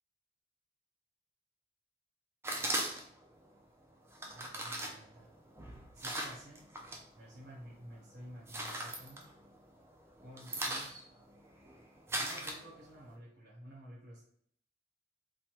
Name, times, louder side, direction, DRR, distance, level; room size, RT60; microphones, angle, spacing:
sound 1, 2.4-3.2 4.1-7.0 7.4-7.9 8.3-9.8 10.1-13.1, right 1 dB, 15° right, 0.3 m, -39 dB
voice 1, 4.2-5.3 5.9-6.6 7.2-9.2 10.2-11.0 12.2-14.2, equal, 60° right, -6 dB, 0.8 m, -52 dB
3.1 x 2.1 x 2.8 m, 0.65 s
head